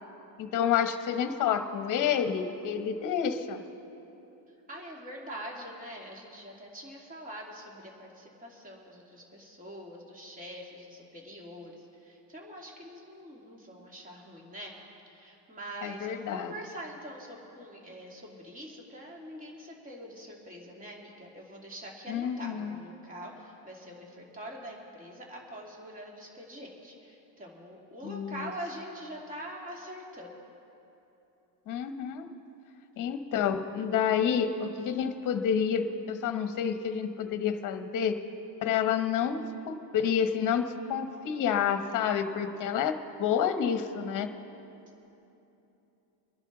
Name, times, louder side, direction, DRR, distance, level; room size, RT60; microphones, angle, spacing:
voice 1, 0.4-3.6 15.8-16.5 22.1-22.8 28.0-28.5 31.7-32.3 33.0-38.1 38.6-40.6 40.9-44.3, left 8 dB, 45° left, 8 dB, 1.1 m, -29 dB
voice 2, 4.7-14.8 15.1-30.3, equal, 20° right, -2 dB, 2.4 m, -44 dB
25.5 x 11.0 x 3.9 m, 3.0 s
cardioid pair, 155°, 43 cm